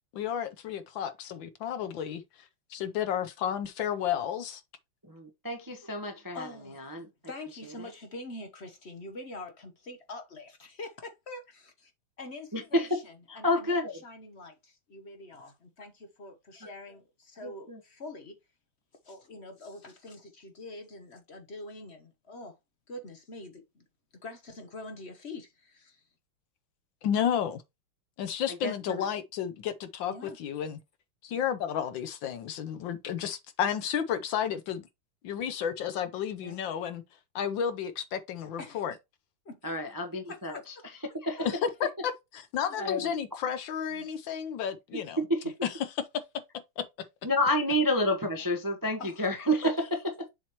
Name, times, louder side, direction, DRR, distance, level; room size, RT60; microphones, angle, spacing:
voice 1, 0.1-2.2 2.7-4.6 27.0-27.6 28.2-30.8 31.2-34.8 35.2-37.0 37.3-38.9 41.8-45.2 46.8-46.9, left 9 dB, 70° left, 1.3 m, -32 dB
voice 2, 5.0-7.1 7.8-7.9 12.5-13.0 13.3-14.0 17.4-17.8 28.5-29.1 39.6-40.7 41.1-41.6 42.8-43.1 44.9-45.5 47.2-50.3, left 1 dB, 20° right, 0.6 m, -30 dB
voice 3, 6.3-6.9 7.3-11.9 12.2-18.4 19.0-22.5 22.9-23.8 24.2-26.0 30.1-30.4 36.4-36.6 38.6-38.8 39.4-39.6 40.3-40.6 41.4-41.6 43.9-44.0 49.0-49.2 49.6-49.7, left 2 dB, 45° left, 0.8 m, -44 dB
7.3 x 2.9 x 4.5 m
omnidirectional pair, 2.4 m